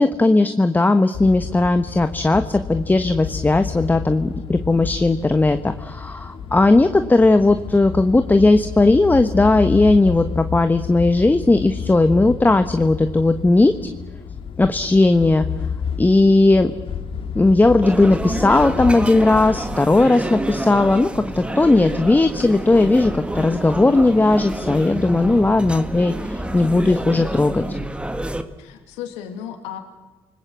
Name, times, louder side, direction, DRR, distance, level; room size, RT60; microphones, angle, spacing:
voice 1, 0.0-13.7 14.6-15.4 16.0-16.7 17.3-27.6, left 2 dB, 15° left, 9 dB, 1.3 m, -17 dB
sound 1, 1.1-19.8, left 7 dB, 55° left, 2.3 m, -31 dB
sound 2, 17.8-28.4, right 1 dB, 10° right, 1.9 m, -28 dB
voice 2, 25.1-25.5 28.6-29.8, left 8 dB, 80° left, 6 dB, 2.5 m, -34 dB
29.0 x 20.0 x 7.5 m, 1.2 s
hypercardioid pair, 60°, 11 cm